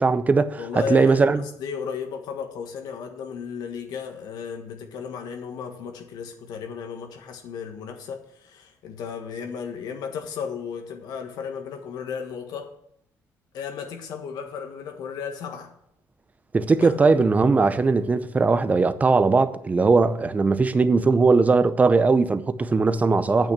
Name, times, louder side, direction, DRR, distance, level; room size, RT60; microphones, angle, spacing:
voice 1, 0.0-1.4 16.5-23.5, right 4 dB, 20° right, 0.6 m, -19 dB
voice 2, 0.6-12.7 13.5-15.7 16.8-17.0, left 6 dB, 80° left, 1.4 m, -34 dB
9.1 x 5.9 x 8.3 m
cardioid pair, 135°, 7 cm